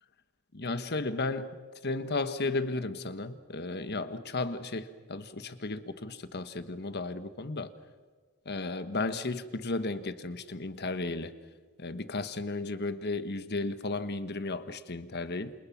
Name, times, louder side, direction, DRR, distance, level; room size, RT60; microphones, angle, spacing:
voice 1, 0.5-1.5 1.8-7.7 8.4-11.3 11.8-15.5, left 3 dB, 45° left, 1.3 m, -34 dB
28.0 x 28.0 x 6.0 m
head